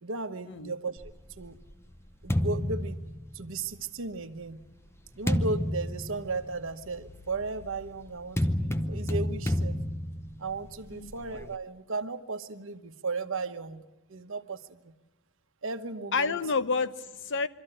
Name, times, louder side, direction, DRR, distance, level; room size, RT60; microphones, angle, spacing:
voice 1, 0.0-1.0 1.4-1.6 2.2-3.0 3.3-4.6 5.2-9.8 10.4-14.9 15.6-16.4, right 3 dB, 65° right, 1.1 m, -35 dB
sound 1, 1.0-3.8 4.5-11.6, left 1 dB, 10° left, 0.7 m, -32 dB
voice 2, 16.1-17.5, left 4 dB, 60° left, 0.8 m, -29 dB
24.5 x 13.5 x 9.9 m
head